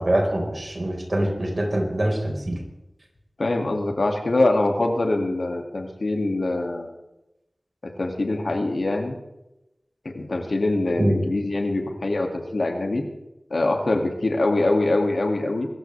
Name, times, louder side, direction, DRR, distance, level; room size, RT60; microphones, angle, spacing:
voice 1, 0.0-2.6 11.0-11.2, right 1 dB, 50° right, 0 dB, 4.9 m, -24 dB
voice 2, 3.4-6.9 8.0-9.2 10.0-13.0 13.5-15.7, left 2 dB, 80° left, 2 dB, 2.4 m, -23 dB
24.5 x 14.0 x 3.5 m, 0.93 s
wide cardioid pair, 50°, 0 cm